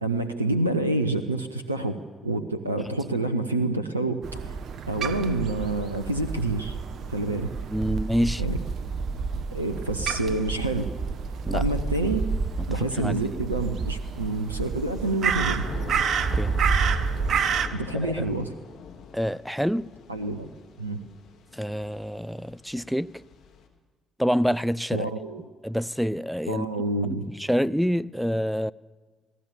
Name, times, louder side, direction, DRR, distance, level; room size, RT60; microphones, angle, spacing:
voice 1, 0.0-4.6 4.9-6.8 7.1-7.5 8.4-8.6 9.5-10.9 11.5-12.2 12.7-15.7 17.7-18.5 20.1-20.5 20.8-21.0 24.9-25.4 26.5-27.3, right 2 dB, 85° right, 0.8 m, -28 dB
Crow, 4.2-17.7, right 5 dB, 50° right, 1.2 m, -29 dB
voice 2, 7.7-8.4 11.5-11.7 12.0-12.1 13.0-13.2 16.3-16.5 18.1-18.2 19.1-19.9 21.5-23.2 24.2-25.1 25.6-26.7 27.3-28.7, equal, ahead, 0.6 m, -27 dB
Thunder / Rain, 13.7-23.6, left 6 dB, 55° left, 2.8 m, -43 dB
27.5 x 18.5 x 7.1 m
figure-of-eight pair, 45°, 0 cm